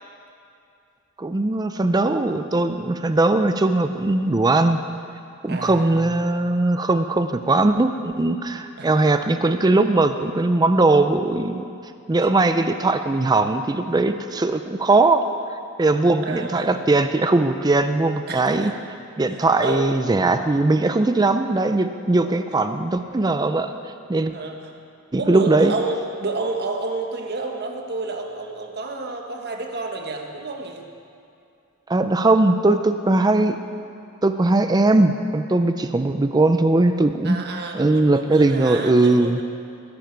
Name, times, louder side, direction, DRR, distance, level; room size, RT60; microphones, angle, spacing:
voice 1, 1.2-4.8 5.4-11.7 12.1-15.3 15.8-18.7 19.2-23.7 24.1-24.3 25.1-25.7 31.9-33.6 34.2-37.4 37.7-39.4, right 2 dB, 20° right, 9 dB, 0.4 m, -19 dB
voice 2, 5.5-6.0 8.8-9.3 12.2-12.3 16.2-16.9 18.3-18.8 19.3-19.9 22.2-22.4 24.3-24.8 25.2-30.8 37.2-39.4, right 3 dB, 50° right, 2 dB, 1.4 m, -30 dB
20.5 x 10.0 x 4.6 m, 2.6 s
head